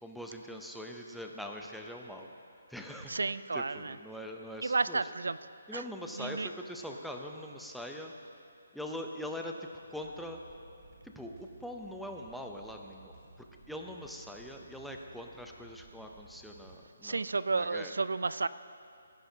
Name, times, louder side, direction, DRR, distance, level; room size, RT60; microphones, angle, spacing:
voice 1, 0.0-2.3 2.7-5.0 5.7-8.1 8.7-10.4 11.0-17.3 17.5-17.9, equal, ahead, 1 dB, 0.5 m, -43 dB
voice 2, 3.1-4.0 4.6-5.4 5.7-5.8 6.2-6.5 17.0-18.5, right 3 dB, 90° right, 15 dB, 0.4 m, -32 dB
sound 1, 9.8-16.8, right 3 dB, 30° right, 1.4 m, -57 dB
17.5 x 10.0 x 2.8 m, 2.5 s
hypercardioid pair, 165°, 0 cm